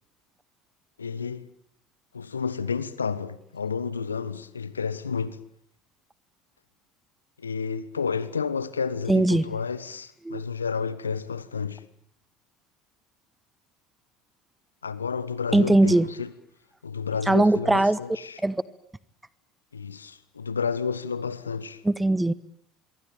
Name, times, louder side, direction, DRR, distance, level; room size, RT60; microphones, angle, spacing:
voice 1, 1.0-1.5 2.1-5.4 7.4-11.8 14.8-16.3 16.8-18.4 19.7-21.8, left 5 dB, 85° left, 1.3 m, -31 dB
voice 2, 9.1-9.5 10.2-10.4 15.5-16.1 17.3-18.0 18.4-18.6 21.8-22.3, right 2 dB, 10° right, 1.2 m, -20 dB
26.5 x 23.5 x 9.1 m
figure-of-eight pair, 65°, 0 cm